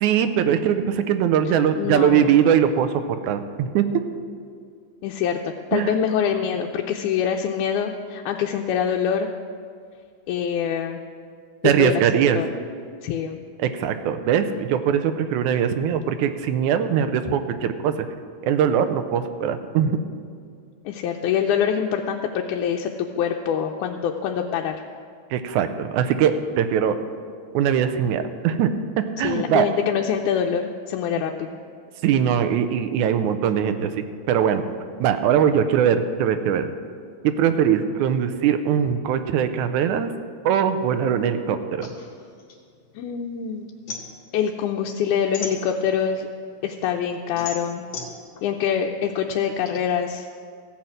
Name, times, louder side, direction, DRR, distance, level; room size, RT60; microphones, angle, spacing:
voice 1, 0.0-2.9 3.2-3.9 5.7-5.9 11.6-12.4 13.6-17.9 18.4-20.0 25.3-27.0 27.5-28.7 29.2-29.7 32.0-33.9 34.3-34.6 35.0-36.7 37.2-40.1 40.5-41.9, right 8 dB, 85° right, 8 dB, 2.0 m, -21 dB
voice 2, 1.8-2.3 5.0-9.3 10.3-11.0 11.6-12.0 12.4-12.5 13.0-13.4 20.9-24.8 29.2-31.5 43.0-43.7 44.3-46.3 46.6-47.8 48.4-50.3, left 8 dB, 85° left, 2 dB, 2.0 m, -25 dB
sound 1, 41.8-43.3 43.6-46.2 46.6-49.8, left 4 dB, 50° left, 1.9 m, -37 dB
15.0 x 5.7 x 7.7 m, 2.2 s
omnidirectional pair, 3.5 m